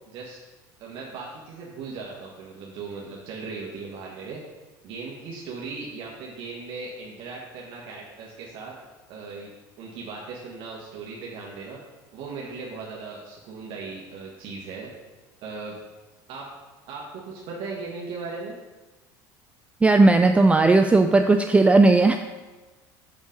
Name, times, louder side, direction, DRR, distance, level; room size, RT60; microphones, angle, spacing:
voice 1, 0.1-0.4 0.8-4.4 4.8-8.7 9.1-9.5 9.8-11.8 12.1-14.9 15.4-15.7 16.3-16.5 16.9-18.6, right 4 dB, 60° right, -3 dB, 1.3 m, -37 dB
voice 2, 19.8-22.2, right 3 dB, 10° right, 6 dB, 0.3 m, -16 dB
6.5 x 5.3 x 5.1 m, 1.2 s
supercardioid pair, 110°, 10 cm